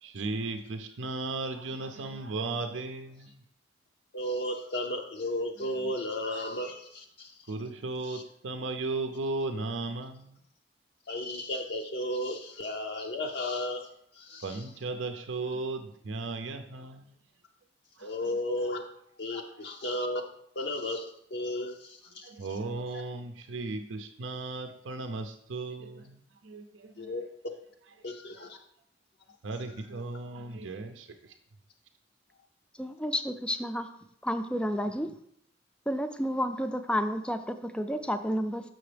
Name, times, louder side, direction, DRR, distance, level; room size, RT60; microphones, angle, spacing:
voice 1, 0.0-3.4 5.6-5.9 7.5-10.4 14.4-17.1 18.0-18.7 19.4-19.6 22.1-27.3 29.4-31.3, right 3 dB, 85° right, 6 dB, 0.5 m, -36 dB
voice 2, 4.1-7.3 8.1-8.2 11.1-13.9 14.1-14.6 18.0-18.8 19.2-20.2 20.6-22.3 27.0-27.5 28.0-28.6, left 1 dB, 60° left, 2 dB, 0.5 m, -34 dB
voice 3, 32.8-33.9 34.2-35.1 35.9-38.6, equal, 5° left, 8 dB, 0.4 m, -31 dB
6.8 x 6.3 x 3.3 m, 0.68 s
head